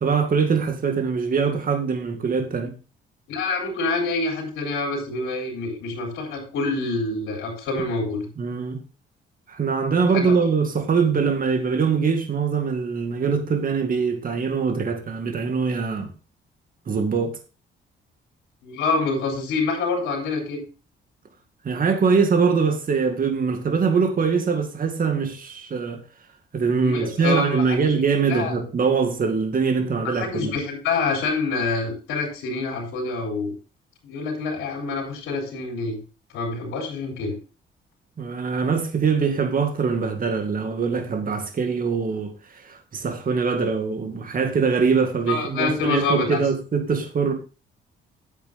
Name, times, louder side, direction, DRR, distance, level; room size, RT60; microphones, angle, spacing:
voice 1, 0.0-2.8 8.4-8.8 9.5-16.1 16.9-17.4 21.6-26.0 26.5-30.5 38.2-47.3, right 5 dB, 45° right, 2.1 m, -23 dB
voice 2, 3.3-8.3 10.1-10.4 18.6-20.6 26.8-27.6 28.3-28.5 30.0-33.5 34.0-36.0 36.3-37.3 45.3-46.4, left 3 dB, 90° left, 3.6 m, -26 dB
9.0 x 7.9 x 3.6 m
cardioid pair, 90°, 20 cm